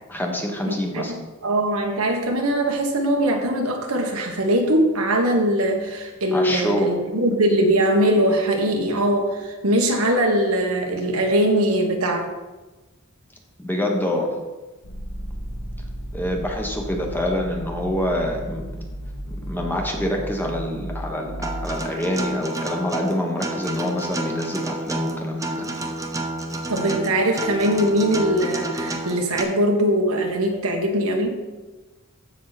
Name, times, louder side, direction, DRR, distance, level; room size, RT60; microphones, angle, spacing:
voice 1, 0.1-1.1 6.3-6.9 13.6-14.3 16.1-18.7 19.3-25.7, left 1 dB, 10° left, 1 dB, 1.4 m, -26 dB
voice 2, 0.7-1.1 1.4-12.2 26.7-31.4, right 1 dB, 85° right, 2 dB, 1.6 m, -21 dB
sound 1, 14.8-21.7, equal, 90° left, 1.7 m, -34 dB
Acoustic guitar, 21.4-29.4, right 1 dB, 15° right, 0.9 m, -29 dB
14.5 x 5.8 x 4.2 m, 1.2 s
head